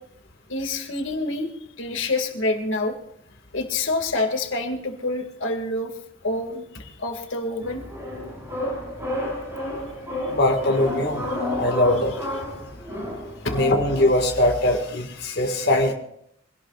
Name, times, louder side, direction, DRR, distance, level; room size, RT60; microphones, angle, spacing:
voice 1, 0.5-1.5 1.8-2.9 3.5-5.9 6.2-7.8 13.4-13.5, left 2 dB, 80° left, 3 dB, 2.1 m, -27 dB
sound 1, 7.6-14.1, left 1 dB, 15° right, 6.8 m, -30 dB
voice 2, 10.3-11.3 11.5-12.2 13.5-15.9, left 1 dB, 55° left, 1 dB, 1.7 m, -21 dB
25.0 x 17.5 x 2.4 m, 0.73 s
head